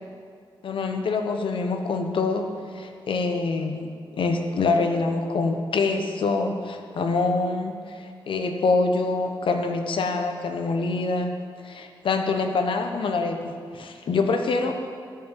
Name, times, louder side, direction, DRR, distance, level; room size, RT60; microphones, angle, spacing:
voice 1, 0.6-2.5 2.7-11.3 11.6-14.7, left 3 dB, 80° left, 5 dB, 1.0 m, -25 dB
11.0 x 5.8 x 7.4 m, 2.2 s
cardioid pair, 85°, 9 cm